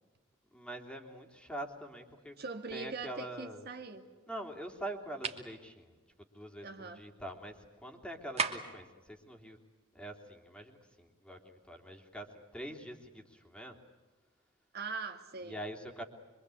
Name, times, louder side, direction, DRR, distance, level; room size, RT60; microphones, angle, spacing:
voice 1, 0.5-2.4 2.7-3.6 4.3-5.9 6.3-9.6 9.9-13.8 15.4-16.0, right 1 dB, 5° left, 2 dB, 3.1 m, -44 dB
voice 2, 2.4-4.0 6.6-7.0 14.7-15.6, right 4 dB, 55° right, 5 dB, 2.2 m, -41 dB
sound 1, 5.2-5.5 8.4-8.8, right 5 dB, 35° right, 2.6 m, -34 dB
25.0 x 25.0 x 8.5 m, 1.3 s
head